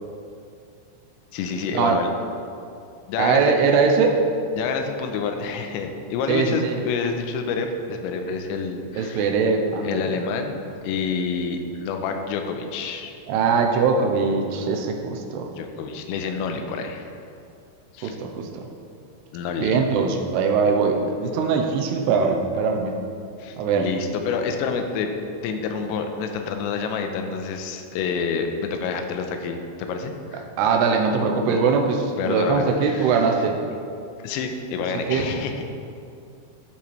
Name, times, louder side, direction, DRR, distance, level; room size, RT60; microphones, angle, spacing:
voice 1, 1.3-2.1 3.1-3.6 4.6-9.3 9.8-10.6 10.8-13.1 15.6-17.1 17.9-18.2 19.3-19.8 23.4-25.1 25.4-30.5 32.2-33.2 34.2-35.7, left 5 dB, 80° left, 5 dB, 2.9 m, -28 dB
voice 2, 3.2-4.2 6.3-6.8 9.0-10.1 13.3-15.5 18.0-18.7 19.6-23.0 23.6-23.9 30.6-33.6 34.9-35.3, right 5 dB, 80° right, 2 dB, 2.4 m, -21 dB
12.0 x 11.0 x 3.3 m, 2.5 s
omnidirectional pair, 5.6 m